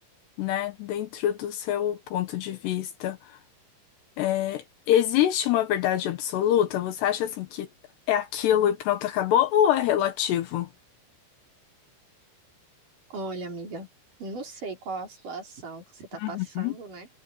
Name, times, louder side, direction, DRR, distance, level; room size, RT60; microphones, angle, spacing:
voice 1, 0.4-3.4 4.2-7.7 8.1-10.7 16.2-16.7, left 11 dB, 75° left, 3.0 m, -25 dB
voice 2, 13.1-13.9 14.2-17.1, right 3 dB, 45° right, 5.4 m, -37 dB
omnidirectional pair, 5.4 m